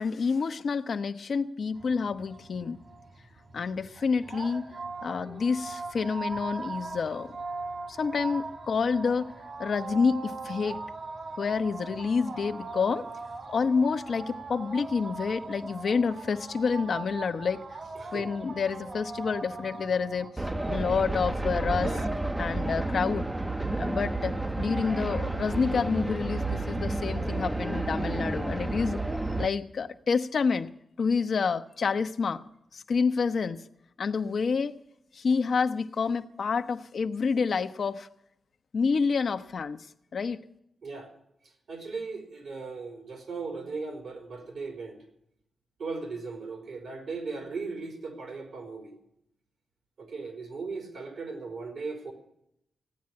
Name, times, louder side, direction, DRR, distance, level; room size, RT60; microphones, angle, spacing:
voice 1, 0.0-2.8 3.5-4.6 5.0-7.3 7.9-9.3 9.6-10.8 11.4-13.1 13.5-17.6 18.1-20.3 20.7-21.9 22.4-23.3 23.8-29.0 29.4-30.7 31.0-32.4 32.7-33.6 34.0-34.8 35.1-38.1 38.7-39.9 40.1-40.4, left 5 dB, 70° left, 8 dB, 0.8 m, -28 dB
sound 1, 1.7-20.3, right 3 dB, 60° right, 2.5 m, -40 dB
voice 2, 17.9-18.3 21.7-22.1 40.8-41.1 41.7-45.0 45.8-49.0 50.0-52.1, right 4 dB, 80° right, 4 dB, 4.1 m, -37 dB
sound 2, 20.4-29.5, right 2 dB, 15° right, 0.6 m, -30 dB
16.5 x 9.5 x 8.7 m, 0.79 s
cardioid pair, 75°, 0 cm